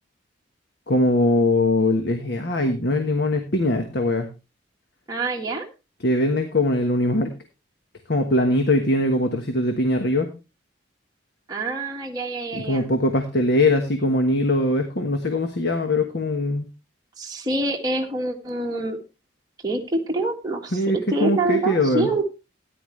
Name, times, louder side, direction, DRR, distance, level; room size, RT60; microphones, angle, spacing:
voice 1, 0.9-4.3 6.0-7.3 8.1-10.3 12.5-16.7 20.7-22.1, left 1 dB, 60° left, 5 dB, 1.3 m, -21 dB
voice 2, 5.1-5.7 11.5-12.9 17.2-19.0 19.6-22.3, right 2 dB, 20° right, -1 dB, 1.6 m, -26 dB
13.5 x 10.0 x 3.2 m, 0.28 s
head